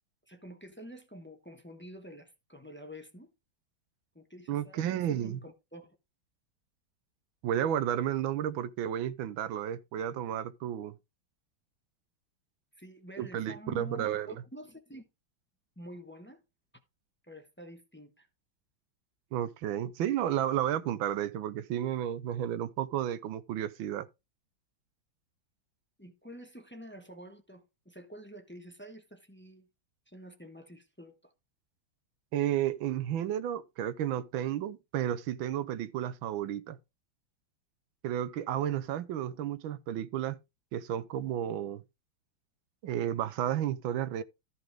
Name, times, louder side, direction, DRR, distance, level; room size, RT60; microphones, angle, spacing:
voice 1, 0.3-3.3 4.1-6.0 12.8-15.1 15.8-16.4 17.3-18.3 26.0-29.7 30.1-31.3, equal, 10° left, 0.8 m, -48 dB
voice 2, 4.5-5.4 7.4-11.0 13.2-14.3 19.3-24.1 32.3-36.8 38.0-40.4 40.7-41.8 42.8-44.2, right 10 dB, 85° right, 1.5 m, -32 dB
14.0 x 5.6 x 3.5 m
omnidirectional pair, 2.2 m